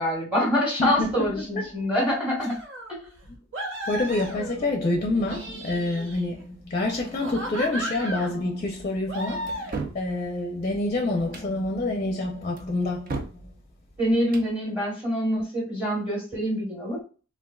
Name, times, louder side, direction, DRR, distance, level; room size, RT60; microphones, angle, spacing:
voice 1, 0.0-2.6 2.9-3.1 14.0-17.0, equal, 5° right, 1.1 m, -25 dB
voice 2, 0.8-1.9 3.3-3.4 3.9-13.5, left 2 dB, 35° left, 0.5 m, -27 dB
sound 1, 2.4-2.9 3.5-4.8 5.2-6.4 7.0-8.4 9.1-9.9, right 1 dB, 65° right, 0.8 m, -35 dB
sound 2, 9.5-10.0 11.2-11.5 12.6-13.4 14.2-14.5, right 3 dB, 45° right, 0.5 m, -35 dB
3.5 x 2.4 x 2.3 m
head